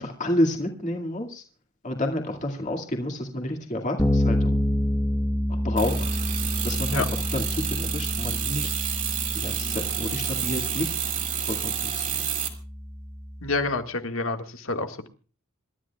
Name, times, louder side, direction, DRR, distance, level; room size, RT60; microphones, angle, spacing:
voice 1, 0.0-1.4 1.8-4.6 5.5-6.1 6.6-8.7 9.4-10.9 11.5-12.2, left 1 dB, 35° left, 3 dB, 2.2 m, -29 dB
Bass guitar, 4.0-13.6, left 1 dB, 10° left, 1.2 m, -28 dB
sound 1, 5.8-12.5, right 9 dB, 35° right, 2.4 m, -30 dB
voice 2, 13.4-15.1, left 3 dB, 65° left, 6 dB, 1.8 m, -28 dB
27.0 x 13.0 x 2.4 m, 0.37 s
head